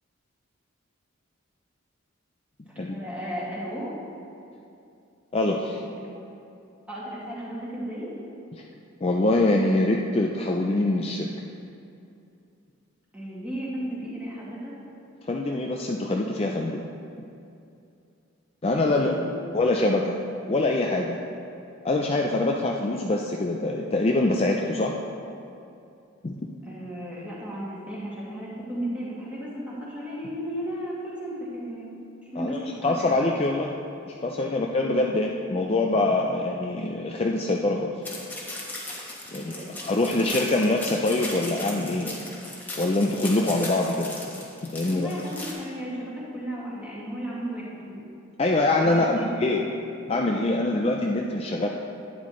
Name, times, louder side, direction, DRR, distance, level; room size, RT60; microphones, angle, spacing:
voice 1, 2.9-3.9 6.0-6.2 6.9-8.1 13.1-14.7 18.9-19.4 26.6-33.2 39.3-40.5 44.9-48.0 48.8-49.4, equal, 5° right, -8 dB, 2.1 m, -35 dB
voice 2, 5.3-5.8 8.5-8.6 9.0-11.3 15.3-16.8 18.6-19.1 19.5-20.1 20.5-21.2 21.8-24.9 26.2-26.4 32.4-33.8 34.1-37.9 39.3-42.2 42.7-44.1 44.6-45.1 48.4-49.7 50.1-51.7, left 2 dB, 30° left, 0 dB, 0.4 m, -24 dB
sound 1, 38.0-45.5, left 2 dB, 10° left, 1.3 m, -37 dB
11.5 x 9.5 x 3.2 m, 2.6 s
head